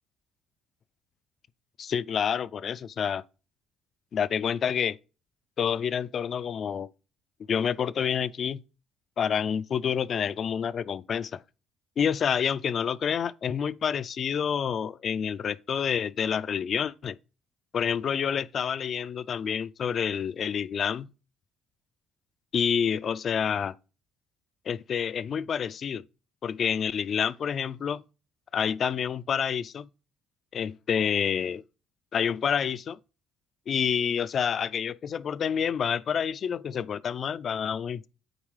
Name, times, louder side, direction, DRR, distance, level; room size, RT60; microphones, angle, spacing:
voice 1, 1.8-3.2 4.1-5.0 5.6-6.9 7.5-8.6 9.2-11.4 12.0-17.2 17.7-21.1 22.5-23.7 24.7-26.0 26.4-28.0 28.5-29.9 30.5-31.6 32.1-33.0 33.7-38.1, left 7 dB, 50° left, 0.3 m, -28 dB
8.7 x 4.4 x 3.2 m
cardioid pair, 95°, 0 cm